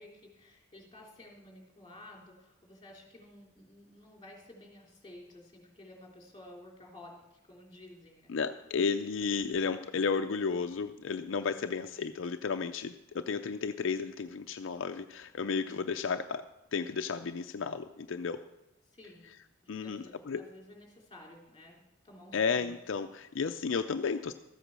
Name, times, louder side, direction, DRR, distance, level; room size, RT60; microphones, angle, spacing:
voice 1, 0.0-8.3 15.3-15.9 18.9-19.4 19.8-21.8 22.0-22.8, left 1 dB, 25° left, -1 dB, 3.4 m, -53 dB
voice 2, 8.3-16.5 16.7-18.4 19.7-20.4 22.3-24.3, left 5 dB, 75° left, 7 dB, 0.5 m, -33 dB
13.5 x 8.3 x 6.1 m, 0.93 s
head